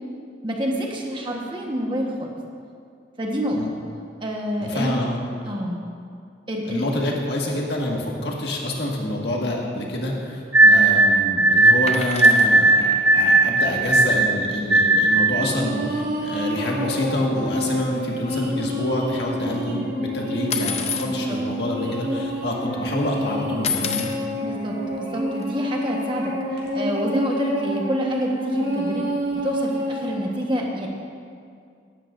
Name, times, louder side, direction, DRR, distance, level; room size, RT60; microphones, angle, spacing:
voice 1, 0.4-2.3 3.2-3.6 4.2-4.9 5.4-5.8 6.5-6.8 10.6-10.8 21.0-21.4 24.4-26.3 26.7-29.0 29.4-30.9, equal, 25° right, -1 dB, 1.3 m, -27 dB
voice 2, 4.6-5.2 5.5-5.6 6.6-24.1, left 1 dB, 65° left, -2 dB, 1.8 m, -27 dB
sound 1, 10.5-15.4, right 2 dB, 10° right, 0.5 m, -16 dB
sound 2, 11.9-12.5 14.7-14.8 15.0-15.2 15.5-15.6 16.4-16.5 17.0-17.4 17.6-19.1 20.5-21.1 21.9-22.0 22.2-22.7 23.6-24.2 25.4-25.5, left 7 dB, 35° left, 0.7 m, -30 dB
sound 3, 15.4-30.1, equal, 70° right, 3.2 m, -28 dB
16.5 x 12.0 x 2.6 m, 2.3 s
head